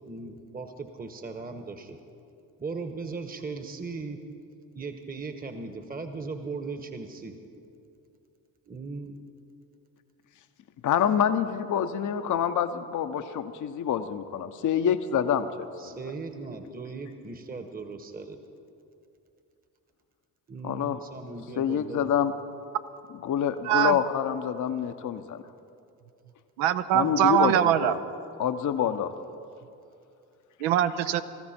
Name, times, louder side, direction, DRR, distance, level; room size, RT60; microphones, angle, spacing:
voice 1, 0.1-2.0 2.6-4.2 4.7-7.4 8.7-9.2 15.8-18.4 20.5-22.1 27.0-27.3, right 4 dB, 20° right, 7 dB, 1.2 m, -38 dB
voice 2, 10.8-15.9 20.6-21.0 21.6-22.3 23.2-25.4 26.9-28.0 28.4-29.1, left 8 dB, 45° left, 9 dB, 0.8 m, -27 dB
voice 3, 23.6-24.0 26.6-27.9 30.6-31.2, right 11 dB, 70° right, 11 dB, 0.8 m, -22 dB
19.0 x 14.5 x 4.4 m, 2.6 s
hypercardioid pair, 55°, 44 cm